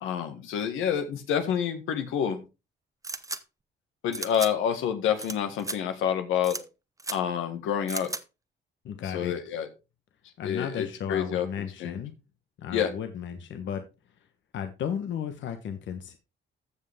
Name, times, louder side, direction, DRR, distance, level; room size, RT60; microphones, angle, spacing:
voice 1, 0.0-2.4 4.0-6.6 7.1-8.1 9.0-9.7 10.4-12.0 12.7-12.9, left 8 dB, 90° left, 7 dB, 1.7 m, -28 dB
sound 1, 3.0-3.4 4.1-4.5 5.2-5.3 5.6-5.8 6.4-6.6 7.0-7.2 7.9-8.2, right 3 dB, 15° right, 1.0 m, -34 dB
voice 2, 8.8-9.3 10.4-12.1 12.6-13.8 14.5-16.2, left 8 dB, 70° left, 7 dB, 1.2 m, -34 dB
14.5 x 5.6 x 3.5 m, 0.28 s
cardioid pair, 90°, 20 cm